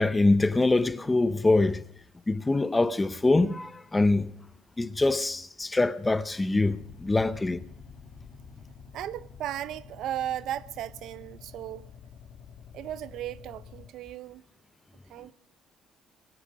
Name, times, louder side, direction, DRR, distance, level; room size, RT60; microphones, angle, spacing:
voice 1, 0.0-1.8 2.3-4.3 4.8-7.6, left 2 dB, 10° left, 0.6 m, -24 dB
sound 1, 6.7-13.9, left 6 dB, 50° left, 1.8 m, -49 dB
voice 2, 8.9-11.9 12.7-14.4 15.1-15.3, right 11 dB, 60° right, 0.5 m, -36 dB
21.5 x 10.0 x 6.2 m
cardioid pair, 170°, 0 cm